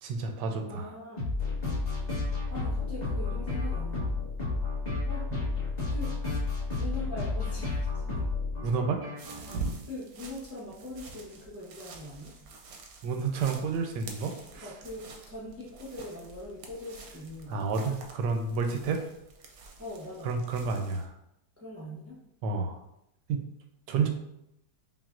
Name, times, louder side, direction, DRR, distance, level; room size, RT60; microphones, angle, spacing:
voice 1, 0.0-0.9 8.6-9.1 13.0-14.7 17.5-19.0 20.2-21.1 22.4-22.8 23.3-23.5 23.9-24.1, right 4 dB, 85° right, 4 dB, 1.2 m, -30 dB
voice 2, 0.6-1.4 2.5-4.1 5.1-5.3 5.9-6.1 6.8-8.3 9.9-12.4 14.2-17.6 19.8-20.3 21.6-22.2, left 1 dB, 20° right, -6 dB, 0.4 m, -42 dB
sound 1, 1.2-9.6, left 3 dB, 25° left, 1.3 m, -31 dB
sound 2, 9.2-21.1, right 3 dB, 65° right, 1.0 m, -45 dB
5.4 x 2.6 x 2.5 m, 0.82 s
omnidirectional pair, 1.8 m